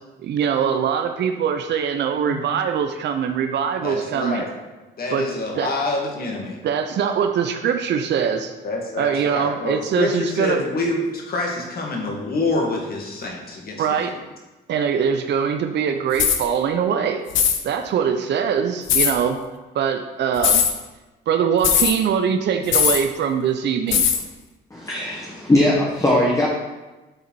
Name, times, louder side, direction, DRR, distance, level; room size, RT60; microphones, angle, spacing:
voice 1, 0.2-4.5 5.1-5.3 5.6-5.7 6.6-8.5 9.0-10.6 13.8-14.1 14.7-17.2 17.6-19.4 19.7-20.6 21.3-24.1, right 7 dB, 60° right, 6 dB, 0.6 m, -22 dB
voice 2, 3.8-4.5 5.0-6.6 8.6-14.2, left 2 dB, 50° left, 0 dB, 1.7 m, -26 dB
sound 1, 16.1-16.4 17.3-17.6 18.9-19.1 20.4-20.7 21.6-21.9 22.7-23.0 23.9-24.2, left 7 dB, 75° left, 0.8 m, -18 dB
voice 3, 24.7-26.5, left 1 dB, 15° left, -3 dB, 1.3 m, -19 dB
7.7 x 4.0 x 4.6 m, 1.1 s
cardioid pair, 90°, 20 cm